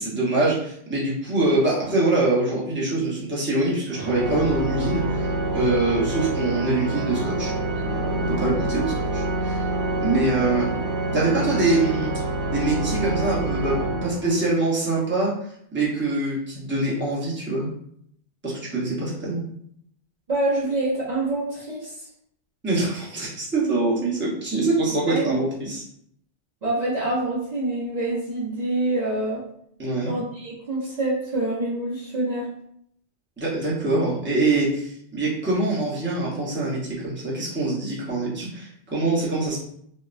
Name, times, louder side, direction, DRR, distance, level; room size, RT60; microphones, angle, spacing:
voice 1, 0.0-9.6 10.0-10.7 11.1-12.1 12.4-17.7 18.4-19.4 22.6-25.8 29.8-30.2 33.4-39.6, right 2 dB, 10° right, -6 dB, 0.8 m, -24 dB
Organ, 3.9-14.7, right 2 dB, 80° right, 1.0 m, -27 dB
voice 2, 20.3-22.0 25.1-25.4 26.6-29.4 30.1-32.5, right 2 dB, 45° right, -8 dB, 0.7 m, -26 dB
3.9 x 2.1 x 2.5 m, 0.69 s
omnidirectional pair, 1.2 m